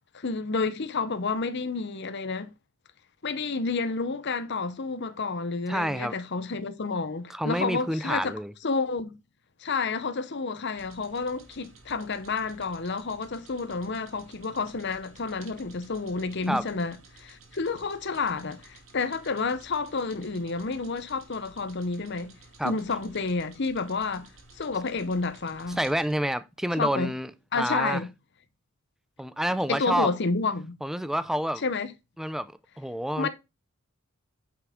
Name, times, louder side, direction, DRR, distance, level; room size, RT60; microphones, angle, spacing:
voice 1, 0.2-2.5 3.2-8.3 8.6-9.2 9.6-22.3 22.6-24.3 24.6-25.8 26.8-27.1 27.5-28.1 29.7-30.8 31.6-31.9 33.2-33.3, left 4 dB, 55° left, 0.8 m, -30 dB
voice 2, 5.7-6.1 7.3-8.5 16.5-16.6 22.6-22.7 25.8-28.0 29.2-30.1 30.8-31.6 32.2-32.5 32.8-33.3, equal, ahead, 0.4 m, -28 dB
sound 1, 10.7-26.1, right 3 dB, 70° right, 2.4 m, -54 dB
9.6 x 5.9 x 3.6 m
head